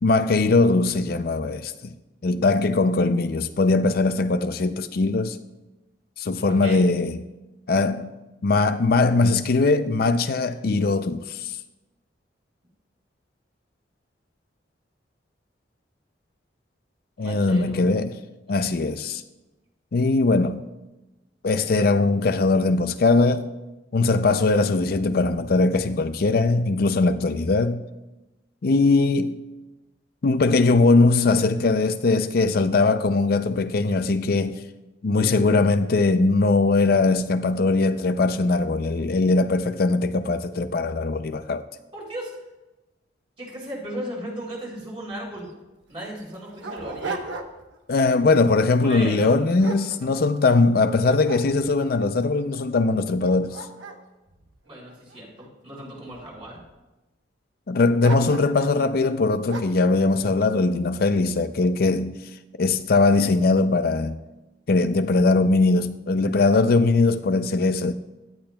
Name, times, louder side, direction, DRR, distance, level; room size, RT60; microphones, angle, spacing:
voice 1, 0.0-1.9 2.2-5.4 6.2-7.2 7.7-8.1 8.4-11.6 17.2-18.2 18.5-19.2 19.9-20.7 21.4-23.5 23.9-27.8 28.6-29.4 30.2-34.6 35.0-41.6 47.9-53.7 57.7-62.2 62.6-64.2 64.7-67.9, left 3 dB, 55° left, 0.5 m, -20 dB
voice 2, 6.5-6.8 17.2-18.0 18.5-18.7 41.9-42.3 43.4-45.5 45.9-47.2 48.8-49.3 54.6-56.6, right 1 dB, 30° right, 4.7 m, -36 dB
Dog, 45.1-45.2 45.4-45.5 46.1-47.8 48.2-48.5 49.1-50.6 51.0-51.9 52.5-52.6 53.1-55.4 56.1-56.7 58.0-58.8 59.5-59.9, right 3 dB, 80° right, 1.1 m, -37 dB
17.0 x 12.0 x 2.3 m
head